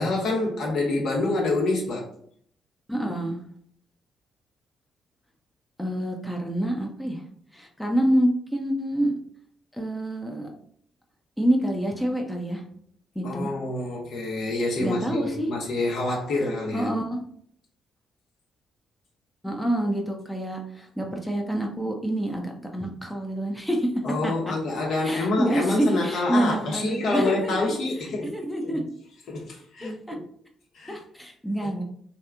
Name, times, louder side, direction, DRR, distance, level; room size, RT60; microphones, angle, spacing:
voice 1, 0.0-2.1 13.2-16.9 24.0-28.3 28.6-28.8 29.3-30.2 30.7-31.0, left 2 dB, 60° left, 1.0 m, -27 dB
voice 2, 2.9-3.4 5.8-7.2 7.5-9.2 9.7-10.5 11.4-12.6 13.1-13.5 14.8-15.5 16.7-17.2 19.4-23.9 24.2-24.3 25.0-27.7 28.3-28.8 29.8-30.1 30.9-31.8, right 1 dB, 5° left, 0.8 m, -27 dB
3.3 x 2.9 x 3.5 m
figure-of-eight pair, 40°, 0 cm